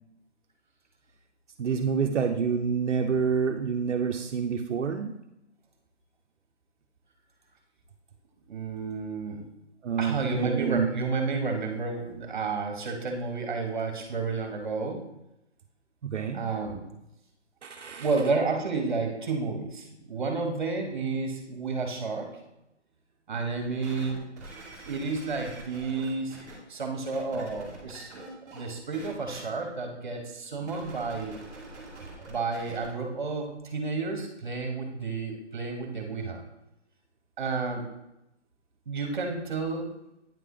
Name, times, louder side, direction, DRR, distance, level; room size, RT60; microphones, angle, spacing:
voice 1, 1.6-5.4 9.8-10.9 16.0-16.5 17.6-18.1, right 6 dB, 75° right, 3 dB, 0.7 m, -28 dB
voice 2, 8.5-9.4 10.0-15.0 16.3-16.8 18.0-22.3 23.3-24.2 24.8-26.4 26.7-31.4 32.3-36.4 37.4-37.8 38.9-39.9, right 4 dB, 40° right, 3 dB, 1.3 m, -31 dB
sound 1, 23.8-26.5 27.1-28.6 28.9-29.4 30.6-32.9 33.5-33.6, right 2 dB, 5° right, 1.0 m, -46 dB
9.1 x 3.4 x 3.8 m, 0.87 s
hypercardioid pair, 175°, 36 cm